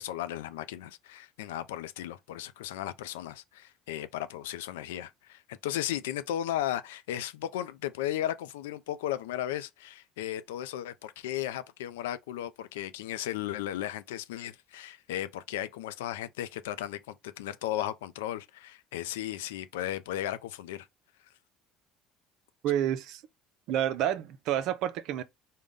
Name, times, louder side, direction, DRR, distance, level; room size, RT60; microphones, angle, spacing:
voice 1, 0.0-20.9, left 12 dB, 85° left, 0.4 m, -35 dB
voice 2, 22.6-23.2 23.7-25.2, right 11 dB, 65° right, 0.5 m, -29 dB
3.7 x 2.1 x 3.5 m
hypercardioid pair, 70°, 0 cm